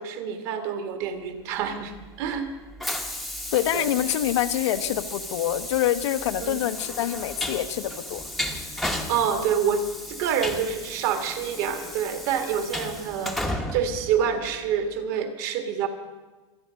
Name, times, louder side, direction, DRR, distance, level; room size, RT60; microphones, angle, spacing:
voice 1, 0.0-1.9 2.2-2.5 3.7-3.9 6.4-6.6 8.8-15.9, right 7 dB, 45° right, 7 dB, 1.9 m, -27 dB
Train, 1.7-14.8, left 1 dB, ahead, 0.9 m, -34 dB
voice 2, 3.5-8.2, left 12 dB, 85° left, 9 dB, 1.0 m, -26 dB
24.5 x 9.2 x 6.4 m, 1.2 s
supercardioid pair, 170°, 15 cm